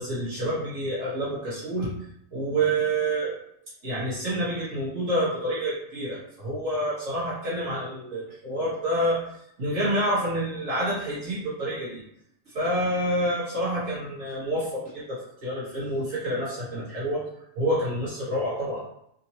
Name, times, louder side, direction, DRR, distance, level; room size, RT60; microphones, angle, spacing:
voice 1, 0.0-1.9 2.3-3.4 3.8-9.3 9.6-12.0 12.5-17.2 17.5-18.9, right 1 dB, 75° right, -8 dB, 1.6 m, -28 dB
3.6 x 2.8 x 2.8 m, 0.75 s
omnidirectional pair, 1.2 m